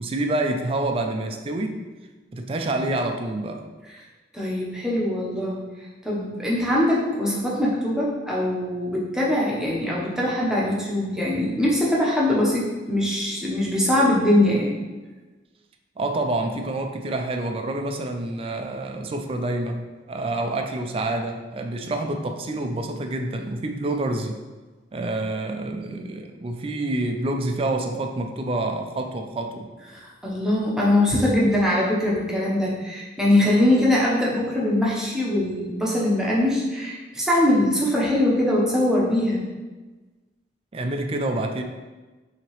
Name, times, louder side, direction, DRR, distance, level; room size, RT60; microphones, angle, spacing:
voice 1, 0.0-1.8 2.3-3.7 16.0-24.4 24.9-29.7 40.7-41.6, right 2 dB, 30° right, 5 dB, 0.4 m, -27 dB
voice 2, 4.3-5.6 6.0-14.8 29.9-39.4, left 1 dB, 5° right, -6 dB, 0.9 m, -22 dB
5.9 x 2.9 x 3.0 m, 1.2 s
head